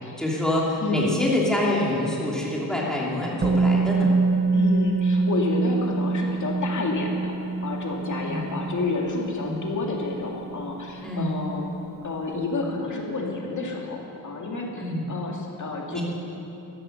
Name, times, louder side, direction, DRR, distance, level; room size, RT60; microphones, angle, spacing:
voice 1, 0.2-4.1 8.2-8.5 9.4-9.6 11.0-11.3 14.8-15.1 15.9-16.0, left 1 dB, ahead, -5 dB, 2.8 m, -26 dB
voice 2, 0.8-1.2 4.5-7.3 7.6-11.7 12.0-14.8 15.1-16.0, left 3 dB, 45° left, -1 dB, 2.3 m, -29 dB
Musical instrument, 3.4-11.3 11.6-11.8, right 3 dB, 25° right, 0.7 m, -25 dB
14.5 x 10.5 x 6.5 m, 2.8 s
wide cardioid pair, 120°, 40 cm